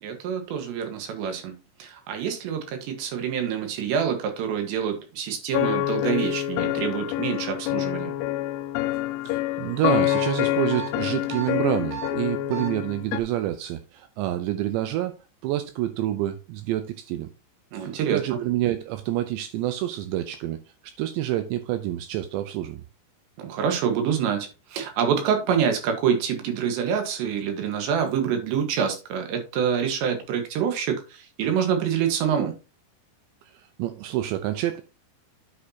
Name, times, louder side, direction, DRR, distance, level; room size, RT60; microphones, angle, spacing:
voice 1, 0.0-8.1 17.7-18.2 23.4-32.6, right 7 dB, 70° right, 3.4 m, -26 dB
sound 1, 5.5-13.2, left 14 dB, 80° left, 3.0 m, -27 dB
voice 2, 9.2-15.1 15.4-17.3 17.7-20.6 20.8-22.8 33.5-34.8, right 13 dB, 85° right, 2.6 m, -28 dB
sound 2, 10.1-10.3 10.7-10.9 11.3-11.5 11.9-12.1 12.5-12.7, right 10 dB, 55° right, 3.1 m, -34 dB
9.6 x 6.6 x 2.8 m
omnidirectional pair, 5.7 m